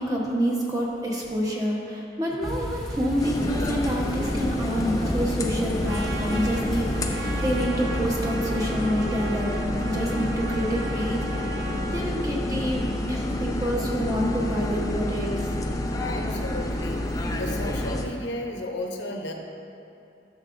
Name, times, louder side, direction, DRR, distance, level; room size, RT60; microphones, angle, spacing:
voice 1, 0.0-11.4 11.9-15.5, equal, 20° right, -3 dB, 1.0 m, -27 dB
sound 1, 2.4-7.7, equal, ahead, 0.9 m, -34 dB
sound 2, 3.2-18.1, left 1 dB, 20° left, 0.4 m, -28 dB
Trumpet, 5.8-12.1, right 3 dB, 70° right, 0.6 m, -38 dB
voice 2, 16.0-19.3, left 1 dB, 75° left, 2 dB, 0.8 m, -34 dB
11.5 x 6.6 x 2.6 m, 2.7 s
head